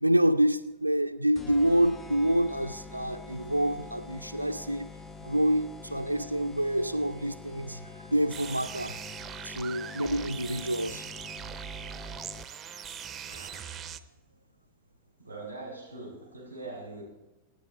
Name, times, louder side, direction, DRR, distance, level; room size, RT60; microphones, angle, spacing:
voice 1, 0.0-4.9 5.2-9.0 9.4-11.0, right 1 dB, 90° right, 0.4 m, -27 dB
sound 1, 1.3-12.7, left 4 dB, 15° left, 0.7 m, -46 dB
sound 2, 8.3-14.0, right 8 dB, 20° right, 0.7 m, -41 dB
voice 2, 13.3-13.9 15.2-17.0, right 2 dB, 85° left, 6.4 m, -42 dB
26.0 x 9.0 x 4.5 m
figure-of-eight pair, 90°, 0 cm